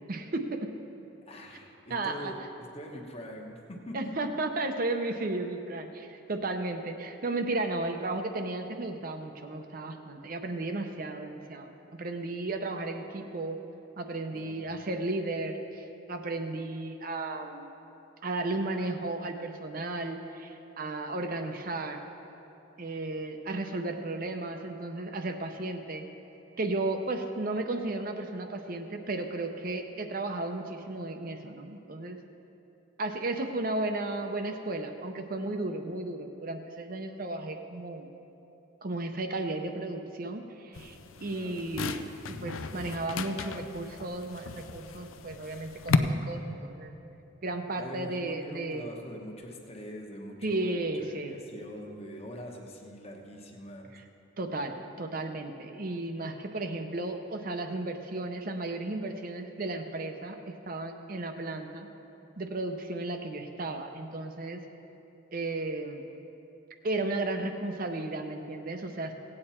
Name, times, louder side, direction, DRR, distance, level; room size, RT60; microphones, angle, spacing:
voice 1, 0.1-0.7 1.9-2.3 3.9-13.6 14.0-17.7 18.2-22.0 22.8-26.1 26.6-32.2 33.0-38.1 38.8-42.0 42.4-46.9 47.4-48.8 50.4-51.3 54.4-61.9 62.4-64.6 65.3-66.0 66.8-69.1, right 2 dB, 40° right, 5 dB, 0.6 m, -34 dB
voice 2, 1.2-4.3 14.3-14.6 41.3-41.7 47.7-53.9, equal, 30° left, 1 dB, 1.1 m, -43 dB
sound 1, 40.7-46.0, left 5 dB, 75° left, 0.5 m, -34 dB
16.5 x 8.7 x 4.3 m, 3.0 s
head